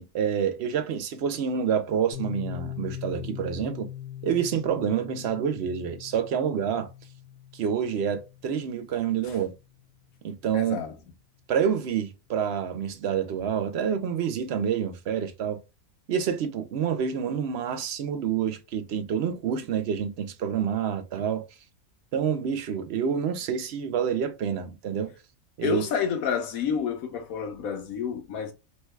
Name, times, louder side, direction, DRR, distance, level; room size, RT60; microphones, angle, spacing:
voice 1, 0.0-3.9 4.2-6.9 7.5-9.5 10.2-10.8 11.5-15.6 16.1-21.4 22.1-25.1 25.6-25.8, right 8 dB, 60° right, 0.7 m, -28 dB
Piano, 2.1-9.6, left 11 dB, 60° left, 0.9 m, -41 dB
voice 2, 10.5-11.0 25.6-28.5, left 7 dB, 80° left, 1.2 m, -29 dB
3.2 x 2.2 x 3.2 m
omnidirectional pair, 1.5 m